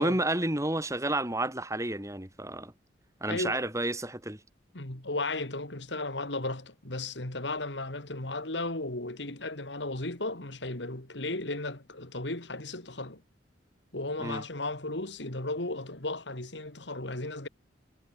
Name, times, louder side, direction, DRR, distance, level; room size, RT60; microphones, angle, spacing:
voice 1, 0.0-2.7 3.2-4.4 14.2-14.4, right 1 dB, 15° right, 3.6 m, -30 dB
voice 2, 3.3-3.6 4.7-13.2 13.9-17.5, left 2 dB, 70° left, 3.5 m, -35 dB
head